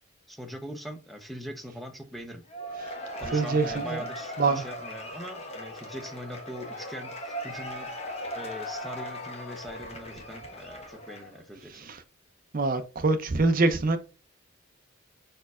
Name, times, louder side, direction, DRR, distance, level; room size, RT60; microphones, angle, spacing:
voice 1, 0.3-2.4 3.2-7.9 8.3-11.9, equal, ahead, 0.6 m, -41 dB
Cheering / Applause / Crowd, 2.5-11.4, equal, 30° left, 1.1 m, -38 dB
voice 2, 3.3-4.0 4.4-4.6 11.7-12.0 12.5-14.0, right 3 dB, 40° right, 0.5 m, -25 dB
5.2 x 4.4 x 2.3 m
head